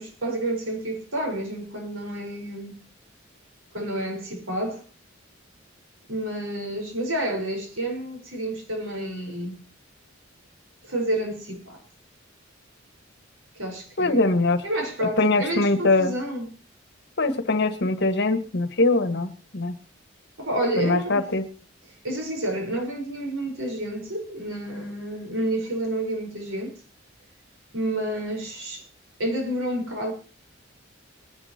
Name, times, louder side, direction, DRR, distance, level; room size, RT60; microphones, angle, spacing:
voice 1, 0.0-2.8 3.7-4.8 6.1-9.6 10.8-11.8 13.5-14.3 14.6-16.5 20.4-21.2 22.0-26.8 27.7-28.9 29.2-30.1, right 1 dB, 90° right, 4.8 m, -29 dB
voice 2, 14.0-14.6 15.0-16.1 17.2-19.8 20.8-21.5, left 2 dB, 60° left, 1.6 m, -22 dB
23.0 x 11.0 x 2.9 m
head